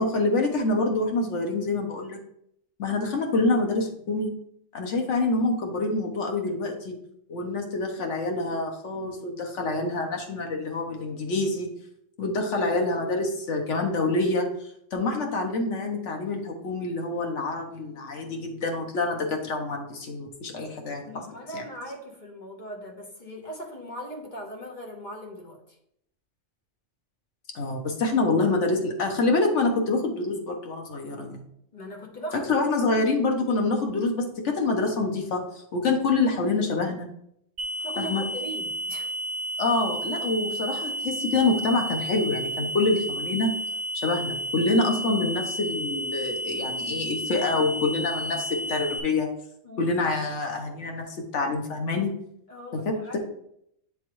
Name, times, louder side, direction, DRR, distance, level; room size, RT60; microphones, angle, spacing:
voice 1, 0.0-2.2 2.8-4.3 4.7-6.9 7.3-11.7 12.2-14.5 14.9-21.1 21.5-21.6 27.5-31.4 32.3-35.4 35.7-37.1 38.0-38.2 39.6-43.5 43.9-49.3 49.8-52.1 52.7-53.2, left 3 dB, 75° left, 2 dB, 1.3 m, -26 dB
voice 2, 21.0-25.8 31.7-32.9 37.8-39.1 49.6-50.1 52.5-53.2, equal, 40° left, 0 dB, 1.2 m, -39 dB
sound 1, 37.6-49.0, right 1 dB, 50° right, 0.9 m, -32 dB
9.4 x 3.6 x 3.1 m, 0.73 s
omnidirectional pair, 1.2 m